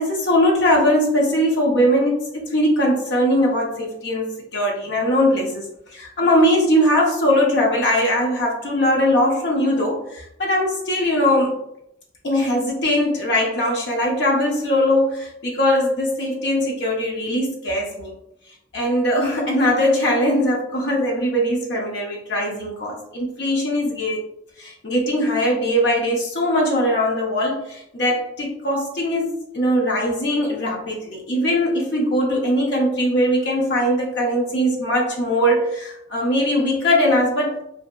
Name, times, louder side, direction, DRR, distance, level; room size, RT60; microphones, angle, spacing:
voice 1, 0.0-11.6 12.2-18.1 18.7-24.2 24.6-37.6, equal, 65° left, -2 dB, 0.6 m, -20 dB
2.7 x 2.6 x 2.3 m, 0.78 s
head